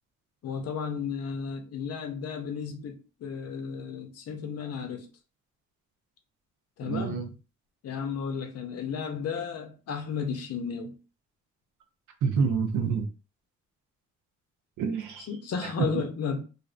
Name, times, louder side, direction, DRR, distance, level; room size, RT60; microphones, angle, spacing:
voice 1, 0.4-5.1 6.8-7.3 7.8-11.0 15.3-16.4, left 6 dB, 55° left, 0.6 m, -33 dB
voice 2, 6.9-7.3 12.2-13.1 14.8-15.3 15.6-16.1, right 5 dB, 80° right, 0.6 m, -28 dB
2.5 x 2.1 x 2.4 m
cardioid pair, 90°, 30 cm